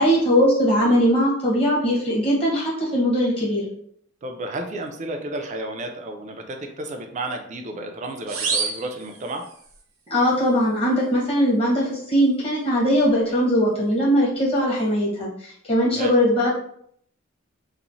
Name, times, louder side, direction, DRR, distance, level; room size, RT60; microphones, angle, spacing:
voice 1, 0.0-3.7 10.1-16.5, equal, 30° left, -6 dB, 1.0 m, -20 dB
voice 2, 4.2-9.4 15.8-16.1, right 2 dB, 35° right, 4 dB, 0.4 m, -32 dB
sound 1, 8.3-9.8, right 5 dB, 85° right, 0.6 m, -28 dB
3.0 x 2.0 x 2.6 m, 0.65 s
head